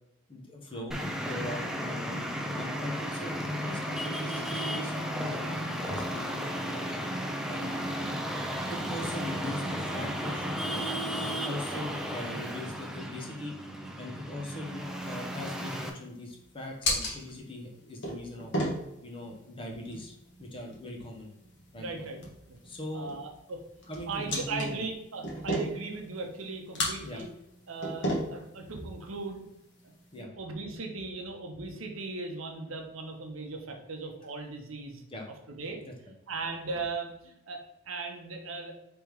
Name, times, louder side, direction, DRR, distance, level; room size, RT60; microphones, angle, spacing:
voice 1, 0.3-0.9 1.2-2.3 2.6-6.9 7.5-8.2 8.7-10.6 11.2-13.5 14.0-18.5 19.0-20.1 20.4-21.3 21.7-22.1 22.6-23.1 23.9-24.8 27.0-27.2 30.1-30.3 35.1-35.3 35.8-35.9, left 1 dB, 25° left, 1 dB, 0.8 m, -40 dB
Traffic noise roadway noise, 0.9-15.9, equal, 5° right, 0.4 m, -34 dB
sound 1, 14.9-30.2, left 1 dB, 60° left, 1.3 m, -37 dB
voice 2, 21.8-22.2 22.5-22.6 22.9-23.6 24.1-27.3 27.7-29.5 29.8-35.0 35.5-35.8 36.3-38.8, right 3 dB, 70° right, 3 dB, 0.8 m, -38 dB
3.4 x 3.4 x 4.6 m, 0.84 s
head